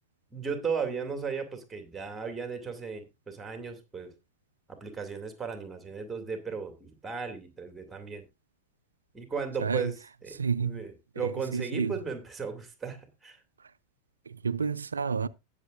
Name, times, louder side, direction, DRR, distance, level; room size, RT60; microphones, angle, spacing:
voice 1, 0.3-4.1 4.7-8.2 9.1-10.0 10.2-13.4, right 5 dB, 10° right, 2.5 m, -36 dB
voice 2, 9.6-9.9 10.3-10.8 11.2-11.9 13.6-13.7 14.3-15.3, right 5 dB, 75° right, 0.4 m, -30 dB
19.0 x 6.9 x 2.6 m
figure-of-eight pair, 90°, 0 cm